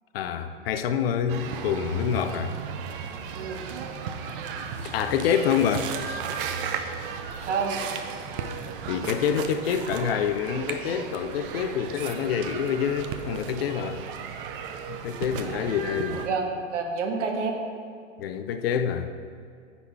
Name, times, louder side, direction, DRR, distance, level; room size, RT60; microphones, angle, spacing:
voice 1, 0.1-2.5 4.9-6.2 8.9-14.0 14.9-16.2 18.2-19.1, left 8 dB, 50° left, 9 dB, 0.5 m, -27 dB
sound 1, 1.3-16.3, right 6 dB, 45° right, 0.6 m, -35 dB
voice 2, 3.3-3.7 7.4-7.8 15.3-17.6, right 4 dB, 65° right, 3 dB, 1.2 m, -30 dB
9.8 x 4.1 x 4.4 m, 2.2 s
hypercardioid pair, 120°, 39 cm